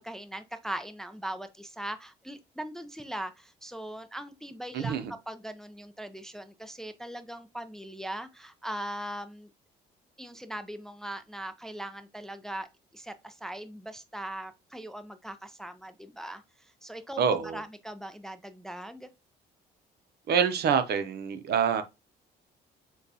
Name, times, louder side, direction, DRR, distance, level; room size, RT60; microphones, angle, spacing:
voice 1, 0.0-4.9 5.3-9.5 10.2-12.7 12.9-19.1, right 1 dB, 5° left, 0.4 m, -40 dB
voice 2, 4.7-5.1 17.2-17.6 20.3-21.8, right 7 dB, 65° right, 0.7 m, -26 dB
6.3 x 2.3 x 2.7 m
cardioid pair, 85°, 18 cm